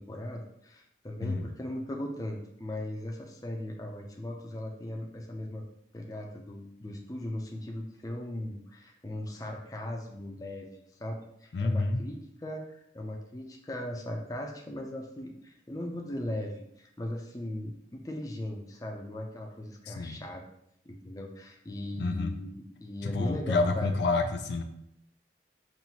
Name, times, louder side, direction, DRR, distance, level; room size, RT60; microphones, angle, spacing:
voice 1, 0.0-5.6 5.9-20.4 20.9-24.0, left 1 dB, 20° left, 1 dB, 0.5 m, -38 dB
voice 2, 11.5-12.1 19.9-20.2 22.0-22.3 23.0-24.6, left 3 dB, 75° left, 6 dB, 0.4 m, -29 dB
5.5 x 2.6 x 2.9 m, 0.74 s
head